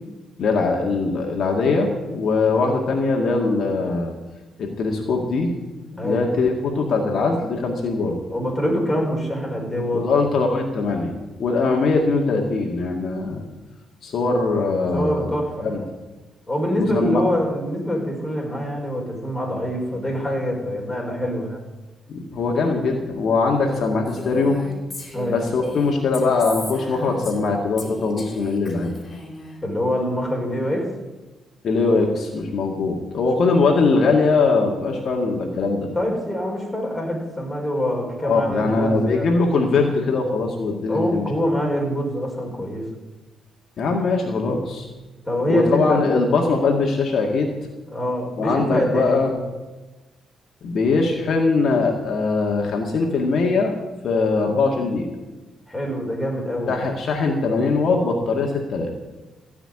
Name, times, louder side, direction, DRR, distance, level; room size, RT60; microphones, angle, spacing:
voice 1, 0.4-4.1 4.6-5.5 5.8-8.2 9.9-11.1 11.4-13.4 14.0-15.3 15.6-15.8 16.8-17.2 22.1-24.6 25.3-28.9 31.6-35.9 38.2-41.2 43.8-44.9 45.5-47.5 48.4-49.4 50.6-53.7 54.0-55.1 56.7-58.9, left 3 dB, 60° left, 1 dB, 2.0 m, -21 dB
voice 2, 8.3-10.3 14.9-15.8 16.5-21.6 25.1-25.4 29.6-30.9 36.0-39.3 40.9-42.8 45.3-46.0 47.9-49.2 55.7-56.8, equal, 10° left, -1 dB, 5.2 m, -25 dB
Female speech woman speaking, 24.1-27.5 27.8-29.6, left 2 dB, 30° left, 3.8 m, -36 dB
15.5 x 5.9 x 9.8 m, 1.1 s
cardioid pair, 90°, 0 cm